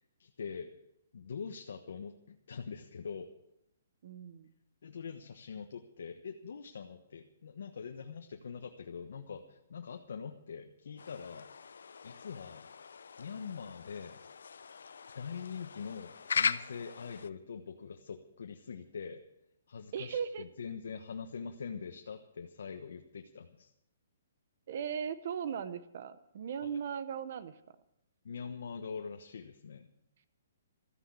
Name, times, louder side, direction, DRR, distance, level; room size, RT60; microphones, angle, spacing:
voice 1, 0.2-0.7 1.1-3.3 4.8-11.5 12.0-12.7 13.2-14.2 15.1-19.2 19.7-23.7 26.6-26.8 28.2-29.9, left 6 dB, 70° left, 5 dB, 1.2 m, -43 dB
voice 2, 4.0-4.5 19.9-20.4 24.7-27.8, right 7 dB, 45° right, 13 dB, 0.8 m, -38 dB
sound 1, 11.0-17.3, left 6 dB, 85° left, 0.6 m, -39 dB
14.0 x 10.0 x 8.3 m, 0.83 s
hypercardioid pair, 170°, 0 cm